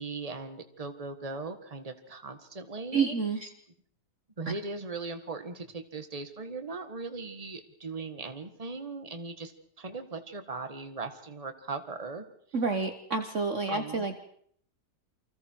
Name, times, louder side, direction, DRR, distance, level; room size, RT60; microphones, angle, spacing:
voice 1, 0.0-3.1 4.4-9.5 9.8-12.2 13.7-14.0, right 3 dB, 20° right, 8 dB, 1.7 m, -39 dB
voice 2, 2.9-3.5 4.5-4.6 12.5-14.2, right 4 dB, 50° right, 7 dB, 1.5 m, -29 dB
28.5 x 25.5 x 4.7 m, 0.63 s
omnidirectional pair, 1.8 m